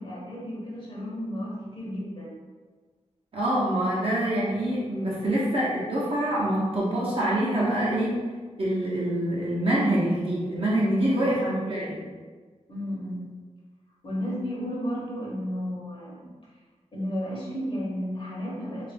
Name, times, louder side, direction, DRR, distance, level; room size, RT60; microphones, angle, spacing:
voice 1, 0.0-2.4 5.1-5.3 11.1-11.4 12.7-13.3 14.0-16.2 16.9-18.9, equal, 45° left, -5 dB, 0.9 m, -33 dB
voice 2, 3.3-8.1 8.6-12.0, right 1 dB, 50° right, -6 dB, 0.7 m, -25 dB
3.0 x 2.5 x 3.4 m, 1.4 s
wide cardioid pair, 115°, 12 cm